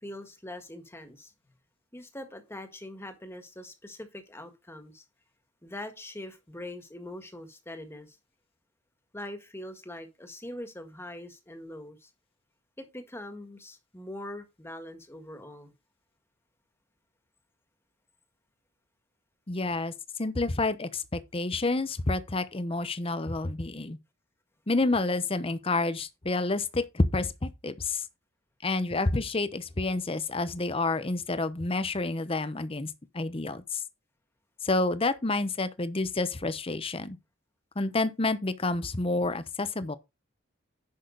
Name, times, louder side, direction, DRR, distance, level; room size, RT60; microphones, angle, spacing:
voice 1, 0.0-1.3 1.9-5.0 5.6-8.2 9.1-12.1 12.8-15.7, left 1 dB, 10° left, 1.7 m, -42 dB
voice 2, 19.5-19.9 20.2-24.0 24.7-28.0 28.6-32.9 33.1-33.8 34.6-37.2 37.8-40.0, left 2 dB, 30° left, 0.9 m, -29 dB
10.5 x 6.3 x 3.9 m
head